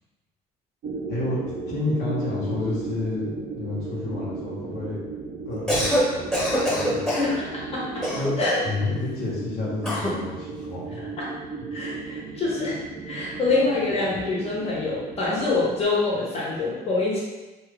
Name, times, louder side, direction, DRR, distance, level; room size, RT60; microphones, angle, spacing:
sound 1, 0.8-15.8, right 4 dB, 60° right, 0.4 m, -35 dB
voice 1, 1.1-1.4 1.7-5.0 5.5-6.2 6.6-7.0 8.1-8.3 8.6-11.0, left 3 dB, 80° left, -6 dB, 1.0 m, -30 dB
Cough, 5.5-6.1 6.3-7.3 8.0-8.7 9.8-10.2, equal, 5° left, 1.2 m, -24 dB
voice 2, 7.1-8.0 8.4-8.6 11.2-11.3 11.7-12.8 13.1-17.2, left 3 dB, 35° left, -6 dB, 1.1 m, -25 dB
3.0 x 2.3 x 3.5 m, 1.1 s
cardioid pair, 110°, 17 cm